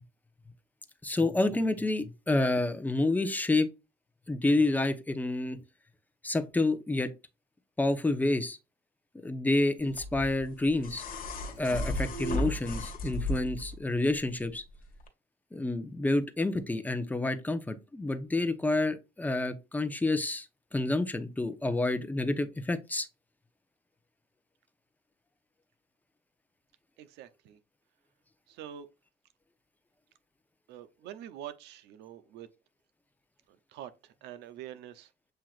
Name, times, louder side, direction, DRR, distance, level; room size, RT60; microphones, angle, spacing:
voice 1, 1.0-3.7 4.3-5.6 6.2-7.1 7.8-8.6 9.2-11.0 11.6-14.6 15.5-20.4 20.7-23.1, left 2 dB, 10° left, 0.8 m, -28 dB
sound 1, 10.0-13.7 15.0-15.1, left 1 dB, 55° left, 1.4 m, -34 dB
voice 2, 27.0-27.6 28.5-28.9 30.7-32.5 33.5-35.1, right 11 dB, 85° right, 0.7 m, -45 dB
7.7 x 2.8 x 2.4 m
cardioid pair, 110°, 17 cm